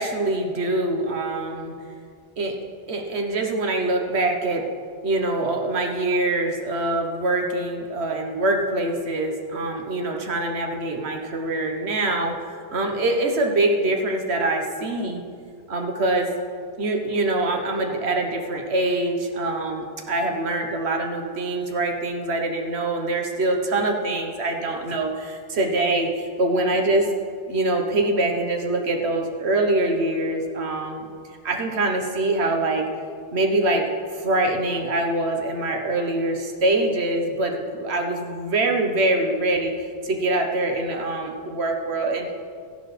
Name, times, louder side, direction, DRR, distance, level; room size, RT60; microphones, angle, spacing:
voice 1, 0.0-1.7 2.4-2.6 2.9-4.7 5.0-15.2 15.7-16.3 16.8-27.1 27.5-31.1 31.4-32.9 33.3-42.3, right 2 dB, 65° right, 3 dB, 1.4 m, -24 dB
14.5 x 10.5 x 3.3 m, 2.2 s
omnidirectional pair, 1.2 m